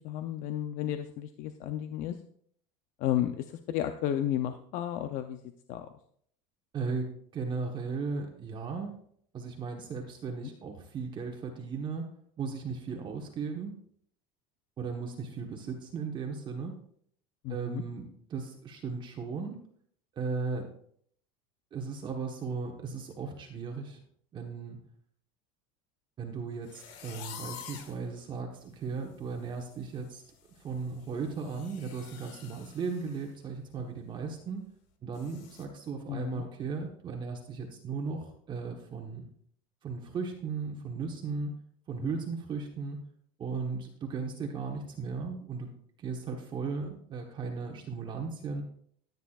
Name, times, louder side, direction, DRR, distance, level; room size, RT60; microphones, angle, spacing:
voice 1, 0.0-2.2 3.0-5.4 5.7-5.9 17.4-17.8 36.1-36.4 42.0-42.2, left 11 dB, 50° left, 8 dB, 0.6 m, -33 dB
voice 2, 6.7-9.0 9.3-12.1 12.4-13.8 14.8-16.8 17.5-19.5 20.1-20.7 21.7-24.0 24.3-24.8 26.2-30.2 30.6-34.7 35.0-39.2 39.8-41.5 41.9-43.0 43.4-45.7 46.0-48.6, right 5 dB, 30° right, 2 dB, 1.2 m, -36 dB
sound 1, 26.6-28.0 28.6-28.7 29.1-29.3 29.6-33.3 33.6-33.8 34.2-34.3 35.1-35.7, left 8 dB, 75° left, 1.7 m, -48 dB
14.0 x 9.4 x 2.4 m, 0.63 s
cardioid pair, 150°, 17 cm